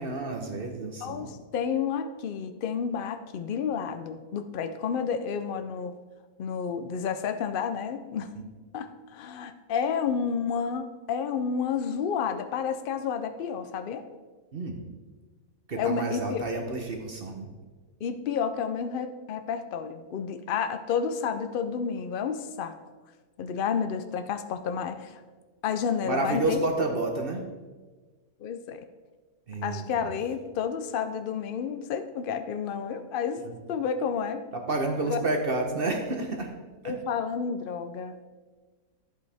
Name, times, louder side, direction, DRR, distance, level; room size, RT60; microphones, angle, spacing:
voice 1, 0.0-1.3 14.5-14.8 15.7-17.5 26.0-27.4 29.5-30.1 33.4-33.6 34.5-36.5 36.8-36.9, right 2 dB, 45° right, 3 dB, 0.9 m, -30 dB
voice 2, 1.0-5.9 6.4-8.3 8.7-14.1 15.8-16.4 18.0-22.7 23.4-25.2 25.6-26.6 28.4-28.8 29.6-34.5 35.1-35.2 36.8-38.1, left 6 dB, 90° left, 9 dB, 0.4 m, -30 dB
11.0 x 8.1 x 3.4 m, 1.3 s
omnidirectional pair, 1.6 m